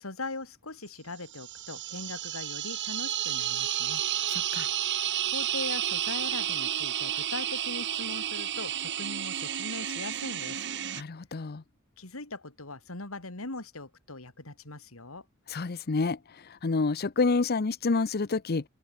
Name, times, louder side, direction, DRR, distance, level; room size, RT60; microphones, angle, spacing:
voice 1, 0.0-4.0 4.8-5.0 5.3-10.6 12.0-15.3, left 2 dB, 85° left, 3.8 m, -40 dB
sound 1, 1.3-11.0, right 11 dB, 60° right, 1.3 m, -31 dB
voice 2, 4.3-4.7 11.0-11.6 15.5-16.2 16.5-18.6, left 4 dB, 50° left, 0.7 m, -28 dB
open air
head